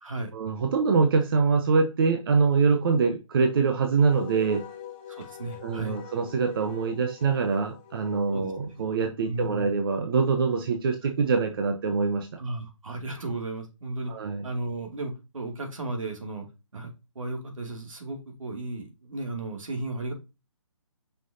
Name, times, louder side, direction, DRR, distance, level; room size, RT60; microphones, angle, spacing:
voice 1, 0.3-4.6 5.6-12.3 14.1-14.4, right 4 dB, 45° right, 4 dB, 0.9 m, -24 dB
Wind instrument woodwind instrument, 4.1-8.9, left 10 dB, 20° left, 0.7 m, -44 dB
voice 2, 5.1-6.0 8.3-8.5 9.3-9.7 12.4-14.1 14.4-16.4 16.7-20.1, right 2 dB, 80° right, 2 dB, 2.4 m, -34 dB
6.1 x 5.7 x 2.7 m, 0.27 s
hypercardioid pair, 150°, 17 cm